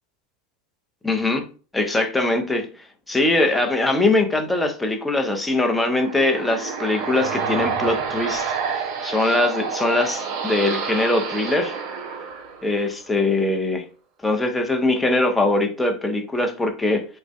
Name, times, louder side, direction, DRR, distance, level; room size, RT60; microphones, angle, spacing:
voice 1, 1.0-1.4 1.7-2.7 3.1-11.8 12.6-13.8 14.2-17.1, left 2 dB, 10° left, 4 dB, 0.5 m, -22 dB
sound 1, 5.5-13.0, right 6 dB, 60° right, 0.5 m, -29 dB
2.5 x 2.0 x 2.4 m, 0.38 s
hypercardioid pair, 95°, 0 cm